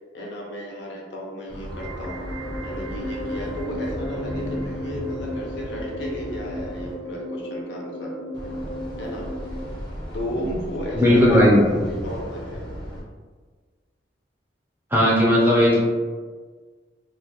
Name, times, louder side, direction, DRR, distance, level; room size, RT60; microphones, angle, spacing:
voice 1, 0.1-2.2 2.6-8.1 9.0-9.3 10.1-12.8, equal, 65° left, -2 dB, 0.5 m, -33 dB
sound 1, 1.5-6.9 8.3-13.0, equal, 25° left, 0.8 m, -36 dB
sound 2, 1.7-9.7, equal, 80° right, 0.5 m, -34 dB
voice 2, 10.9-11.7 14.9-15.8, equal, 10° right, -5 dB, 0.5 m, -16 dB
2.3 x 2.2 x 2.8 m, 1.5 s
head